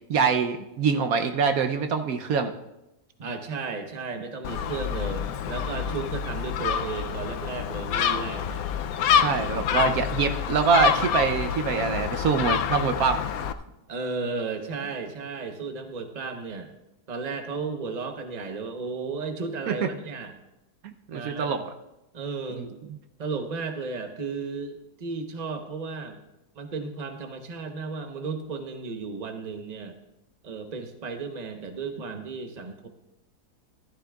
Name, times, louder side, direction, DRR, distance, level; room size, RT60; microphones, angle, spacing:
voice 1, 0.1-2.5 9.1-13.2 19.7-19.9 20.8-21.6 22.5-22.7, right 5 dB, 70° right, 7 dB, 1.1 m, -24 dB
voice 2, 3.2-8.6 9.7-10.2 13.9-16.7 17.1-20.3 21.1-21.6 22.1-22.7 23.2-26.2 26.5-29.9 30.4-32.9, right 4 dB, 30° right, 5 dB, 0.9 m, -34 dB
Gull seagull, 4.4-13.5, left 8 dB, 70° left, 1.0 m, -27 dB
15.0 x 12.5 x 2.3 m, 0.92 s
omnidirectional pair, 1.7 m